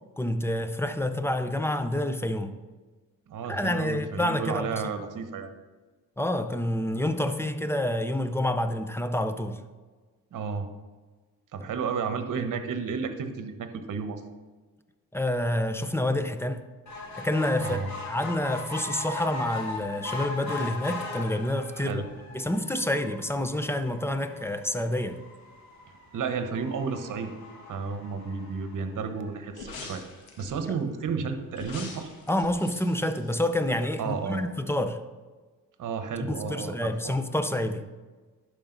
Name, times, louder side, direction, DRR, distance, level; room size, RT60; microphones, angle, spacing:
voice 1, 0.2-2.5 3.5-4.8 6.2-9.6 15.1-16.6 17.2-17.8 18.1-22.0 22.3-25.2 32.3-35.0 36.3-37.8, left 1 dB, 5° left, 9 dB, 0.5 m, -28 dB
voice 2, 3.3-5.5 10.3-10.7 11.5-14.2 17.6-17.9 21.7-22.1 26.1-27.3 27.7-30.0 30.4-32.1 34.0-34.4 35.8-37.2, right 5 dB, 60° right, 8 dB, 1.1 m, -32 dB
sound 1, 16.9-29.5 30.0-30.1 30.4-30.5 30.8-30.9, left 3 dB, 50° left, 2.6 m, -39 dB
sound 2, 29.5-30.7 31.5-34.0 34.3-34.4, left 4 dB, 85° left, 1.4 m, -44 dB
11.5 x 5.0 x 3.9 m, 1.3 s
cardioid pair, 80°, 35 cm